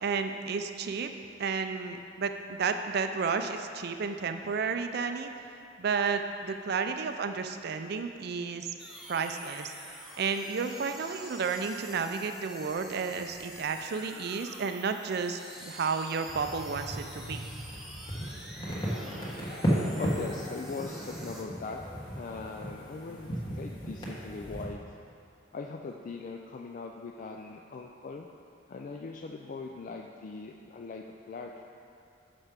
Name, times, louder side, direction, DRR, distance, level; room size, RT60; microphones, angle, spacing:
voice 1, 0.0-1.1 1.4-5.3 5.8-8.7 9.1-9.7 10.2-17.4, right 5 dB, 55° right, 7 dB, 0.4 m, -32 dB
sound 1, 8.8-21.4, right 1 dB, ahead, 0.7 m, -48 dB
sound 2, 16.3-24.7, equal, 25° left, 1.3 m, -35 dB
voice 2, 19.6-21.8 22.1-23.3 23.5-24.8 25.5-28.3 28.7-31.6, left 4 dB, 45° left, 2 dB, 0.3 m, -40 dB
6.5 x 5.8 x 5.1 m, 2.6 s
head